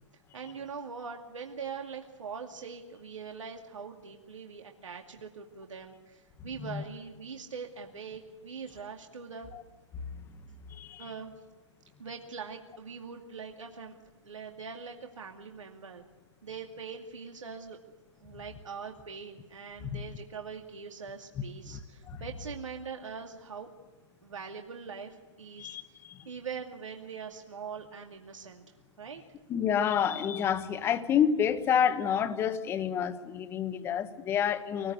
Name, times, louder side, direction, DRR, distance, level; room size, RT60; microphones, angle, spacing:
voice 1, 0.3-9.5 11.0-11.3 12.0-14.0 14.2-16.1 16.4-17.8 18.2-23.7 24.2-28.6 29.0-29.2, right 6 dB, 85° right, 2.4 m, -42 dB
voice 2, 10.7-11.1 19.9-20.0 22.1-22.2 25.6-26.3 29.5-34.9, left 8 dB, 15° left, 1.2 m, -29 dB
24.5 x 20.0 x 8.2 m
hypercardioid pair, 150°, 16 cm